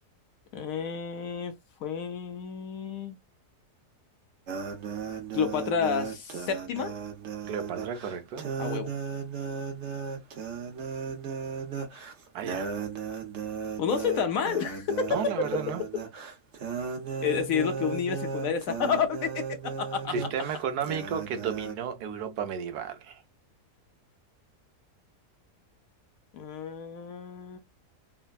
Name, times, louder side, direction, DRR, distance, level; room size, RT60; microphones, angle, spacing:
voice 1, 0.5-1.5 1.8-3.2 5.3-6.9 8.6-8.9 13.8-15.3 17.2-19.3 19.6-20.1 26.3-27.6, left 7 dB, 70° left, 0.9 m, -30 dB
sound 1, 4.5-21.7, right 6 dB, 55° right, 1.0 m, -36 dB
voice 2, 7.4-8.5 12.3-12.7 15.1-15.8 20.1-23.2, right 7 dB, 80° right, 1.2 m, -33 dB
3.4 x 2.1 x 2.2 m
omnidirectional pair, 1.7 m